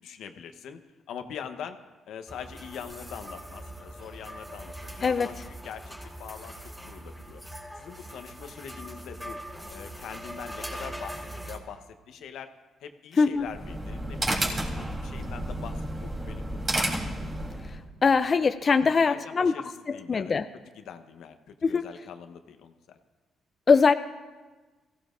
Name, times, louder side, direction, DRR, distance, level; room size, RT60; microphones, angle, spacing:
voice 1, 0.0-0.8 1.1-1.8 2.1-5.3 5.6-6.5 6.8-7.4 7.8-9.4 9.7-12.5 12.8-16.9 18.8-20.4 20.7-23.0, left 8 dB, 80° left, 7 dB, 1.0 m, -43 dB
sound 1, 2.3-11.6, right 1 dB, ahead, 3.5 m, -41 dB
sound 2, 13.4-17.8, right 1 dB, 35° right, 3.5 m, -31 dB
voice 2, 18.0-19.5 19.9-20.4 21.6-21.9 23.7-23.9, left 5 dB, 40° left, 9 dB, 0.5 m, -22 dB
22.5 x 16.0 x 2.6 m, 1.3 s
cardioid pair, 90°, 0 cm